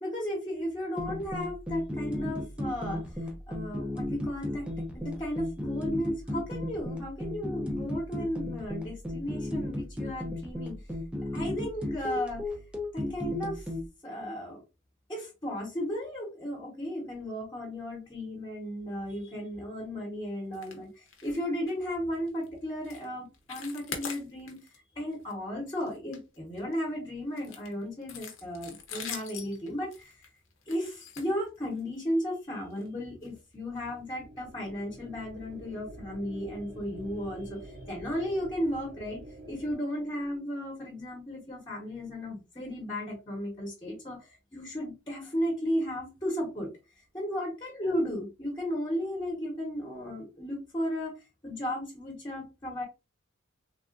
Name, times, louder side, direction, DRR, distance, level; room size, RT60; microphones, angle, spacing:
voice 1, 0.0-4.7 4.9-10.8 11.3-12.4 12.9-14.6 15.1-24.6 24.9-30.3 30.6-46.7 47.1-51.2 51.4-52.8, equal, 25° left, -2 dB, 1.1 m, -35 dB
sound 1, 1.0-13.9, left 1 dB, 5° right, 0.5 m, -35 dB
sound 2, 20.5-20.8 21.1-21.4 21.7-21.8 22.3-22.5 22.8-23.1 23.3-24.8 25.1-25.3 25.7-26.8 27.4-32.0 32.7-32.9 33.2-33.3 33.8-33.9, left 6 dB, 70° left, 0.8 m, -43 dB
sound 3, 33.6-39.7, right 1 dB, 55° right, 0.7 m, -47 dB
3.4 x 2.4 x 2.5 m, 0.28 s
head